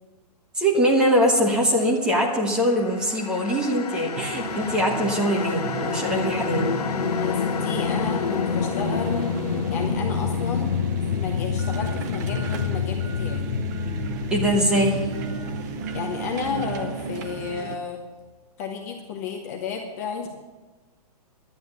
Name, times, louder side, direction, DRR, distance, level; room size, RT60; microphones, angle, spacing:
voice 1, 0.5-6.7 14.3-15.1, equal, 5° right, -2 dB, 1.1 m, -22 dB
sound 1, 2.5-17.7, left 7 dB, 70° left, 0.9 m, -28 dB
sound 2, 4.1-17.8, right 6 dB, 30° right, 0.8 m, -34 dB
voice 2, 7.1-9.3 9.7-10.9 11.1-13.5 15.9-18.0 18.6-20.3, left 6 dB, 25° left, 2 dB, 0.8 m, -32 dB
11.0 x 9.3 x 6.7 m, 1.2 s
hypercardioid pair, 175°, 20 cm